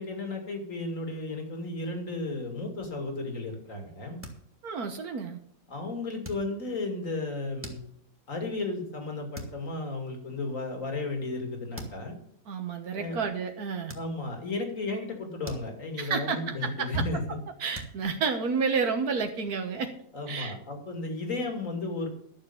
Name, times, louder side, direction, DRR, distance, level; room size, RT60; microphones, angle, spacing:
voice 1, 0.0-4.2 5.7-7.8 8.3-12.2 12.9-13.3 13.9-17.4 20.1-22.1, left 2 dB, 60° left, 3 dB, 3.0 m, -34 dB
sound 1, 4.2-4.8 5.2-5.5 6.2-6.9 7.4-8.3 8.8-9.0 9.3-9.7 10.1-10.2 11.3-11.4 11.7-12.1 12.7-12.9 13.9-14.5 14.9-16.2 16.5-16.8 17.1-17.2 17.7-19.0, right 1 dB, 10° right, 2.2 m, -45 dB
voice 2, 4.6-5.4 12.5-13.9 16.0-17.0 17.6-19.9 20.3-20.5, right 5 dB, 80° right, 5 dB, 1.7 m, -30 dB
13.0 x 6.8 x 7.1 m, 0.68 s
omnidirectional pair, 1.6 m